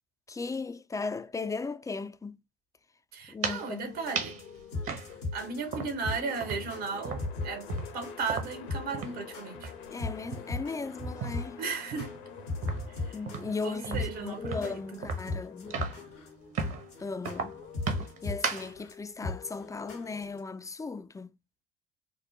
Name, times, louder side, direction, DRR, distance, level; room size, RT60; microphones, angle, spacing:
voice 1, 0.3-2.4 3.3-3.9 9.9-11.6 13.1-15.8 17.0-17.5 18.2-21.3, left 4 dB, 10° left, 0.3 m, -37 dB
voice 2, 3.1-4.4 5.3-9.7 11.6-12.1 12.9-13.2 13.6-15.0, right 5 dB, 65° right, 1.3 m, -36 dB
sound 1, 3.2-3.7 4.1-4.4 4.8-6.1 6.4-9.3 9.5-9.8 10.2-11.5 11.9-16.1 16.5-16.9 17.2-18.7, right 5 dB, 45° right, 1.0 m, -36 dB
sound 2, 3.8-20.4, left 3 dB, 85° left, 1.2 m, -39 dB
sound 3, 5.7-17.8, left 7 dB, 65° left, 0.9 m, -51 dB
5.1 x 2.1 x 2.9 m
figure-of-eight pair, 55°, 30 cm